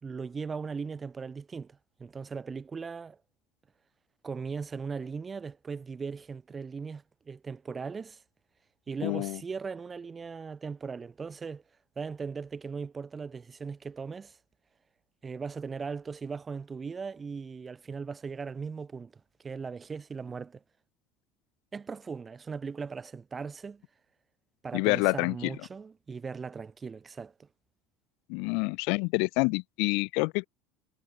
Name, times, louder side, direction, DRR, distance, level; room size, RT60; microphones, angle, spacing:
voice 1, 0.0-3.2 4.2-8.2 8.9-11.6 12.0-14.4 15.2-19.1 19.4-20.6 21.7-23.8 24.6-27.5, right 5 dB, 20° right, 2.7 m, -38 dB
voice 2, 9.0-9.4 24.7-25.4 28.3-30.5, left 34 dB, 75° left, 0.8 m, -27 dB
supercardioid pair, 125°, 0 cm